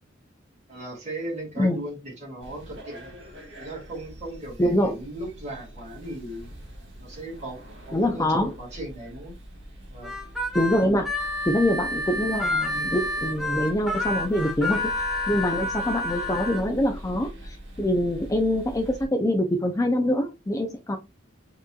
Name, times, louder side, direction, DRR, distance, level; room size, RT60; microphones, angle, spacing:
voice 1, 0.7-3.1 3.6-6.5 7.0-9.4 9.9-10.1 16.8-17.0, right 1 dB, 35° right, 1.9 m, -37 dB
sound 1, 2.4-19.1, right 1 dB, 60° right, 2.2 m, -43 dB
voice 2, 4.6-4.9 7.9-8.5 10.5-11.1 11.5-14.9 15.3-21.0, left 1 dB, 15° left, 0.4 m, -24 dB
Harmonica, 10.0-16.6, left 2 dB, ahead, 0.9 m, -29 dB
4.5 x 3.0 x 2.3 m
head